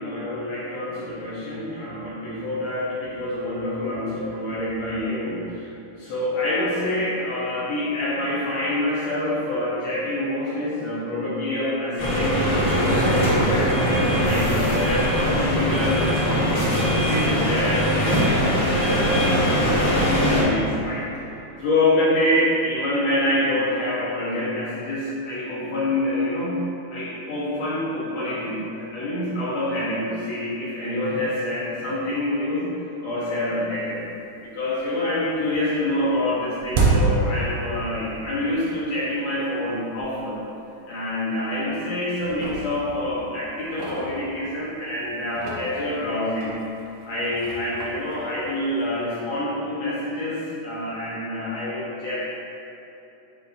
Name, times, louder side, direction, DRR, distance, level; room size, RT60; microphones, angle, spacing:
voice 1, 0.0-5.7 6.0-13.7 14.2-21.3 21.6-32.7 33.0-34.0 34.4-40.4 40.9-46.5 47.0-52.2, left 1 dB, 80° left, -9 dB, 1.5 m, -26 dB
sound 1, 12.0-20.4, equal, 65° left, 1.1 m, -21 dB
sound 2, 33.9-34.0 34.4-35.0 35.3-38.2 38.5-38.6 39.4-39.5 40.0-40.1 40.4-40.6 41.3-41.8 42.1-44.8 45.2-49.1, right 3 dB, 75° right, 2.3 m, -29 dB
10.0 x 4.5 x 2.7 m, 2.9 s
omnidirectional pair, 4.7 m